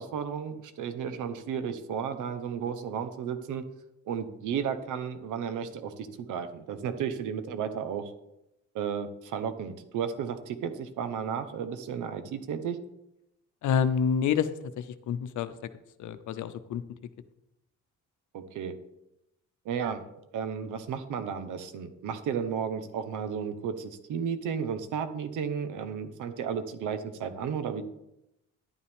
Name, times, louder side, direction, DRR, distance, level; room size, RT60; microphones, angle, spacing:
voice 1, 0.0-3.6 4.1-8.1 8.7-12.8 18.3-18.7 19.6-20.0 20.3-27.8, right 7 dB, 80° right, 10 dB, 1.0 m, -33 dB
voice 2, 13.6-14.5 14.8-15.5 16.0-16.8, left 7 dB, 75° left, 12 dB, 0.8 m, -28 dB
11.0 x 9.7 x 3.5 m, 0.87 s
cardioid pair, 90°, 30 cm